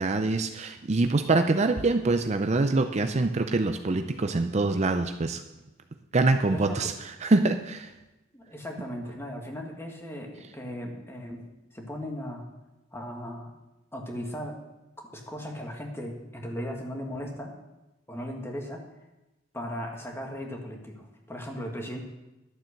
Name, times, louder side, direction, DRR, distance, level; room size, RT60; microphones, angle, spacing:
voice 1, 0.0-5.4 6.1-6.9 7.2-7.9, right 3 dB, 35° right, 7 dB, 0.5 m, -24 dB
voice 2, 6.5-6.9 8.3-11.4 11.7-12.4 12.9-13.5 13.9-14.6 15.0-17.6 18.1-18.9 19.5-22.0, equal, 15° left, 1 dB, 1.7 m, -37 dB
11.5 x 7.7 x 6.5 m, 1.0 s
head